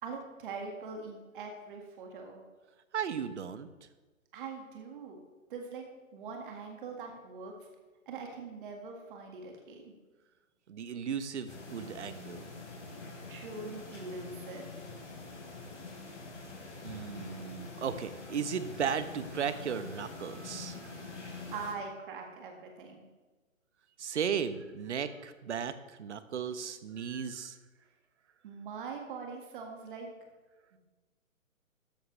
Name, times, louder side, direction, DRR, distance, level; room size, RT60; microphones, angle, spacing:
voice 1, 0.0-2.4 4.3-5.2 5.5-5.8 6.1-7.5 8.1-9.9 13.3-14.7 20.7-20.8 21.5-23.1 28.4-30.1 30.7-30.8, right 4 dB, 40° right, 2 dB, 1.9 m, -42 dB
voice 2, 2.9-3.7 10.7-12.5 16.8-20.9 24.0-25.7 26.0-27.6, right 7 dB, 55° right, 12 dB, 1.0 m, -35 dB
sound 1, 11.5-21.7, left 3 dB, 60° left, 4.0 m, -45 dB
13.5 x 10.5 x 3.3 m, 1.2 s
figure-of-eight pair, 140°, 41 cm